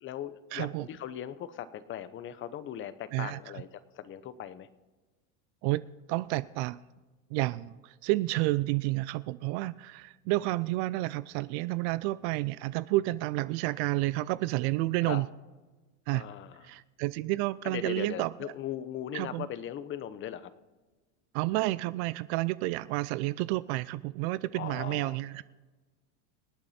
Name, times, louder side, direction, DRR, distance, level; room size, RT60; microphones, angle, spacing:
voice 1, 0.0-3.7 3.9-4.7 15.1-15.2 16.1-16.7 17.6-20.5 24.5-25.2, left 10 dB, 30° left, 14 dB, 0.9 m, -39 dB
voice 2, 0.5-0.9 3.1-3.4 5.6-5.8 6.1-6.8 7.3-15.3 16.1-16.3 16.6-18.5 19.1-19.5 21.3-25.4, right 19 dB, 60° right, 17 dB, 0.5 m, -30 dB
26.0 x 8.8 x 4.3 m, 1.3 s
supercardioid pair, 135°, 38 cm